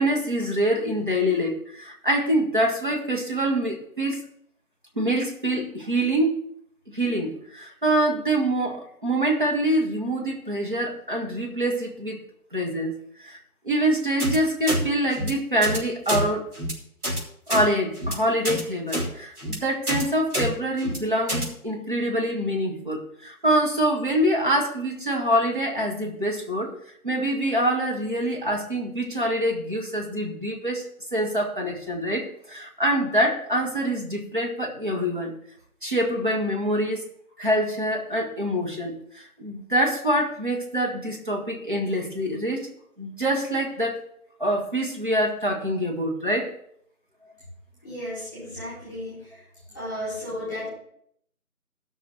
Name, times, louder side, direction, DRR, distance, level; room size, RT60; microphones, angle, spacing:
voice 1, 0.0-4.2 5.0-6.4 6.9-12.2 12.5-12.9 13.2-13.4 13.6-16.5 17.5-26.7 27.0-35.3 35.8-37.0 37.4-42.7 43.0-44.0 44.4-46.5, right 1 dB, 35° right, 0 dB, 1.7 m, -25 dB
sound 1, 14.2-14.4 14.7-14.8 15.1-15.3 15.6-15.8 16.1-16.2 16.5-16.7 17.0-17.2 17.5-17.6 18.0-18.1 18.4-18.6 18.9-19.1 19.4-19.6 19.9-20.0 20.3-20.5 20.8-21.0 21.3-21.5, equal, 85° right, 3.2 m, -27 dB
voice 2, 47.8-49.4 49.7-50.7, left 1 dB, ahead, -11 dB, 3.8 m, -34 dB
12.5 x 6.2 x 6.0 m, 0.69 s
figure-of-eight pair, 170°, 44 cm